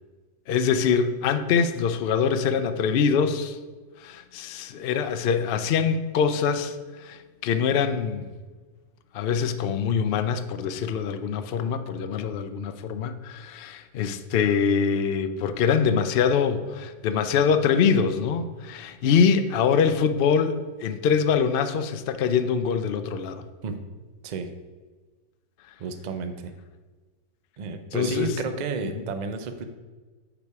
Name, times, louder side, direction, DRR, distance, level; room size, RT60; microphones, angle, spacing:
voice 1, 0.5-3.6 4.0-8.3 9.1-23.4 27.9-28.4 28.9-29.0, left 6 dB, 70° left, 9 dB, 0.5 m, -24 dB
voice 2, 25.8-26.5 27.6-29.6, right 4 dB, 65° right, 7 dB, 0.4 m, -32 dB
7.0 x 5.1 x 4.7 m, 1.3 s
omnidirectional pair, 1.5 m